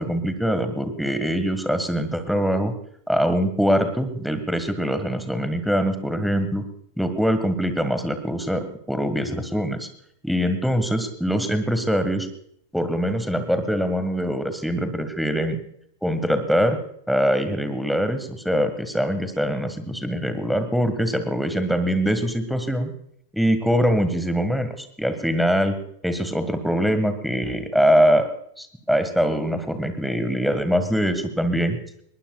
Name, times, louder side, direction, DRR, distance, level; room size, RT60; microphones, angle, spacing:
voice 1, 0.0-2.7 3.1-6.7 7.0-9.9 10.2-12.3 12.7-15.6 16.0-16.8 17.1-22.9 23.3-25.8 26.0-28.3 28.6-31.8, equal, ahead, 9 dB, 1.7 m, -23 dB
21.0 x 19.5 x 2.4 m, 0.68 s
figure-of-eight pair, 90°, 0 cm